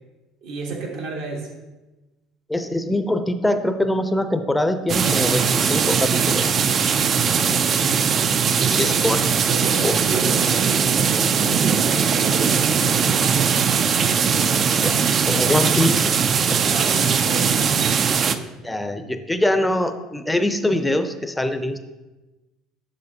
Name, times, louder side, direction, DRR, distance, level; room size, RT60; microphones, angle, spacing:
voice 1, 0.4-1.5 7.3-8.9 9.5-15.9 16.6-18.5, right 3 dB, 80° right, -1 dB, 1.4 m, -33 dB
voice 2, 2.5-6.5 8.7-9.5 9.8-10.0 14.8-14.9 15.3-16.1 16.5-16.6 18.6-21.8, left 1 dB, 10° left, 9 dB, 0.5 m, -23 dB
sound 1, 4.9-18.4, right 6 dB, 40° right, 0.4 m, -20 dB
6.5 x 6.2 x 2.8 m, 1.1 s
supercardioid pair, 95°, 0 cm